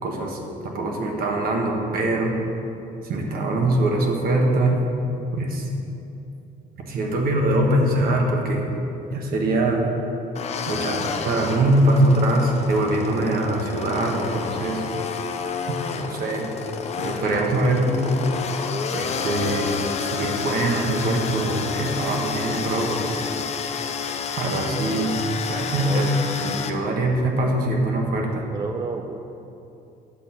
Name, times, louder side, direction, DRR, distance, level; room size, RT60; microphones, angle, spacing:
voice 1, 0.0-2.3 3.0-4.8 5.3-5.7 6.9-8.7 9.1-9.8 10.7-14.8 16.0-16.5 17.0-18.2 18.6-18.7 18.9-23.2 24.4-25.2 25.4-26.0 26.4-28.4, right 1 dB, 60° right, 1 dB, 1.4 m, -23 dB
sound 1, 10.3-26.7, left 6 dB, 40° left, 0.5 m, -30 dB
voice 2, 25.7-26.2 28.5-29.2, right 4 dB, 25° right, 5 dB, 0.4 m, -31 dB
8.3 x 4.1 x 7.0 m, 2.8 s
cardioid pair, 110°, 17 cm